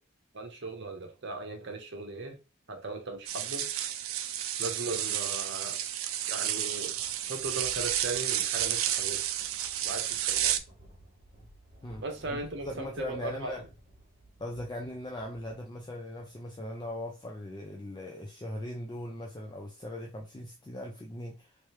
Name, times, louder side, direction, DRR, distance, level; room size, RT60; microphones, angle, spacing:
voice 1, 0.3-2.4 2.7-3.7 4.6-5.8 6.3-6.9 7.3-9.2 9.8-10.5 12.0-13.5, right 3 dB, 55° right, 0.9 m, -38 dB
sound 1, 3.3-10.6, right 11 dB, 75° right, 0.4 m, -31 dB
Thunder, 6.8-17.1, right 1 dB, 30° right, 1.4 m, -56 dB
voice 2, 12.3-13.7 14.4-21.6, left 1 dB, 20° left, 0.4 m, -39 dB
3.3 x 3.1 x 3.2 m
head